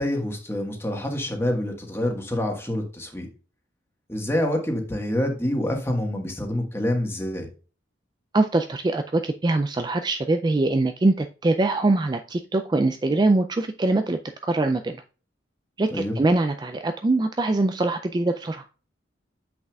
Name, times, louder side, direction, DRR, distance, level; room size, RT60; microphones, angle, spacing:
voice 1, 0.0-3.3 4.1-7.5 15.9-16.2, left 1 dB, 15° left, 2 dB, 1.4 m, -27 dB
voice 2, 8.3-15.0 15.8-18.6, right 2 dB, 25° right, 7 dB, 0.3 m, -23 dB
7.9 x 5.9 x 2.3 m, 0.36 s
head